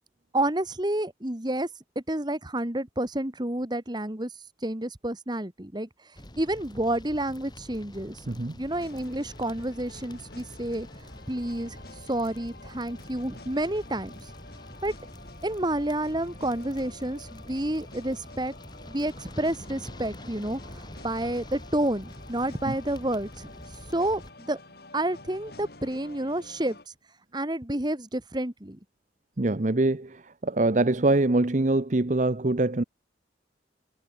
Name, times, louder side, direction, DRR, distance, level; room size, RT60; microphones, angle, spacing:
voice 1, 0.3-1.7 2.0-4.3 4.6-5.9 6.4-8.2 8.6-14.3 14.8-14.9 15.4-18.6 18.9-23.5 23.9-24.6 24.9-26.8 27.3-28.8, right 1 dB, 25° right, 2.0 m, -30 dB
sound 1, 6.2-24.3, left 1 dB, 25° left, 5.9 m, -46 dB
sound 2, 8.7-26.8, left 2 dB, 60° left, 4.2 m, -49 dB
voice 2, 29.4-32.8, right 2 dB, 45° right, 0.9 m, -24 dB
head